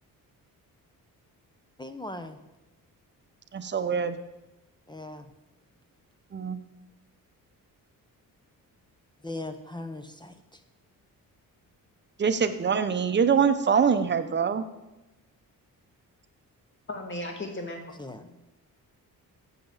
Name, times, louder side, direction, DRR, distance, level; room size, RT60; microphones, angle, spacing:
voice 1, 1.8-2.4 4.9-5.3 9.2-10.6 18.0-18.3, left 2 dB, 15° left, 8 dB, 0.6 m, -39 dB
voice 2, 3.5-4.1 6.3-6.6 12.2-14.6, right 6 dB, 30° right, 9 dB, 0.8 m, -24 dB
voice 3, 16.9-17.8 18.2-18.3, left 1 dB, 35° left, 3 dB, 1.9 m, -35 dB
7.9 x 7.6 x 7.2 m, 0.99 s
cardioid pair, 125°, 35 cm